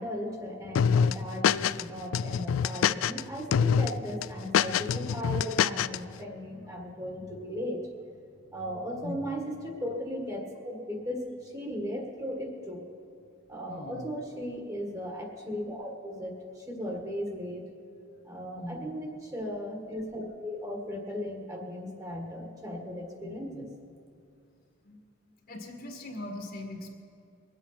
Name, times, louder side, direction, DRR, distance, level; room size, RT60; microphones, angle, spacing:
voice 1, 0.0-7.9 8.5-12.9 13.5-17.7 18.2-23.7, equal, 15° right, 1 dB, 1.7 m, -37 dB
sound 1, 0.8-1.8 2.1-3.2 3.5-3.9 4.2-6.0, left 7 dB, 85° left, 0.3 m, -25 dB
voice 2, 13.7-14.1 18.5-19.1 23.2-23.7 24.8-26.9, left 1 dB, 50° left, 3 dB, 1.7 m, -42 dB
22.0 x 8.4 x 5.7 m, 2.5 s
head